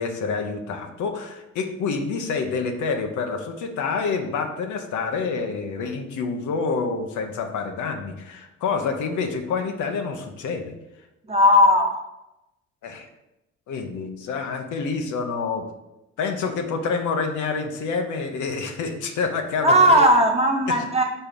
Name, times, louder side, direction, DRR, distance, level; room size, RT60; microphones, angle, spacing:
voice 1, 0.0-10.7 12.8-13.1 13.7-15.6 16.2-20.0 20.7-20.8, left 4 dB, 80° left, 5 dB, 0.9 m, -27 dB
voice 2, 11.3-12.0 19.6-21.0, equal, 20° right, 1 dB, 1.3 m, -17 dB
4.5 x 4.3 x 5.2 m, 0.94 s
cardioid pair, 90°, 30 cm